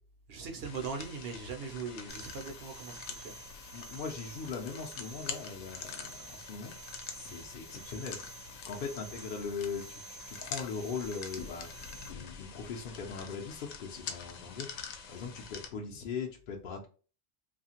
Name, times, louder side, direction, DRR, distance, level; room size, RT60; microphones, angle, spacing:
voice 1, 0.3-3.3, right 5 dB, 60° right, 0.7 m, -40 dB
sound 1, 0.6-15.7, left 6 dB, 75° left, 0.9 m, -45 dB
sound 2, 2.1-12.1, right 5 dB, 15° right, 0.6 m, -50 dB
voice 2, 3.7-6.7 7.1-8.2 8.7-11.7 12.0-14.7 15.1-16.9, left 5 dB, 60° left, 0.6 m, -40 dB
2.7 x 2.4 x 2.8 m
omnidirectional pair, 1.3 m